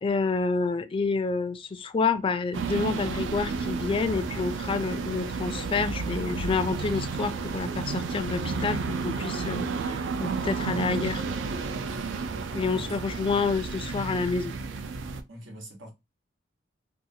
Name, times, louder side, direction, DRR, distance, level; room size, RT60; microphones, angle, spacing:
voice 1, 0.0-8.8 9.0-11.2 12.5-14.5, left 4 dB, 30° left, 0.3 m, -28 dB
sound 1, 2.5-15.2, right 4 dB, 75° right, 0.4 m, -32 dB
voice 2, 12.5-13.4 15.3-15.9, equal, 90° right, 1.1 m, -44 dB
2.8 x 2.3 x 2.7 m
head